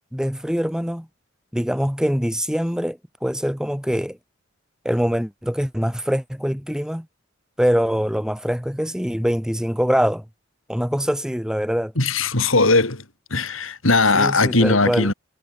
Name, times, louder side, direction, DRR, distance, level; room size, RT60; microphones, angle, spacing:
voice 1, 0.1-1.1 1.5-4.2 4.8-7.1 7.6-10.2 10.7-11.9 14.1-15.1, equal, 5° right, 2.8 m, -23 dB
voice 2, 12.0-13.0 13.3-15.1, left 3 dB, 85° left, 4.4 m, -19 dB
head